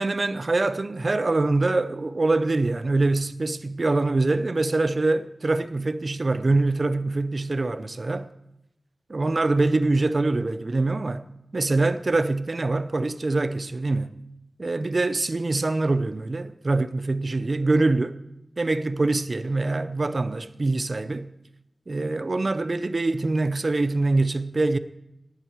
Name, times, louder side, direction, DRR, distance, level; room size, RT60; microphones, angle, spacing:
voice 1, 0.0-8.3 9.1-11.3 11.5-14.1 14.6-18.1 18.6-21.3 21.9-24.8, right 2 dB, 45° right, 0.6 m, -24 dB
18.0 x 9.0 x 4.6 m
wide cardioid pair, 95°, 0 cm